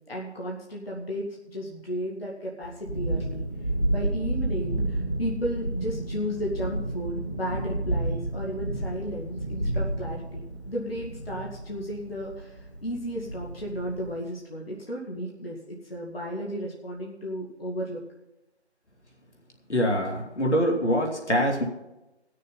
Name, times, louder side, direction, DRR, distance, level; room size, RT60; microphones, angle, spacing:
voice 1, 0.1-3.4 3.9-18.0, equal, 60° left, -3 dB, 2.1 m, -34 dB
Thunderstorm, 2.6-14.2, right 1 dB, 25° left, 1.2 m, -31 dB
voice 2, 19.7-21.6, equal, 80° left, 0 dB, 2.8 m, -24 dB
18.5 x 6.7 x 5.6 m, 0.99 s
figure-of-eight pair, 170°, 34 cm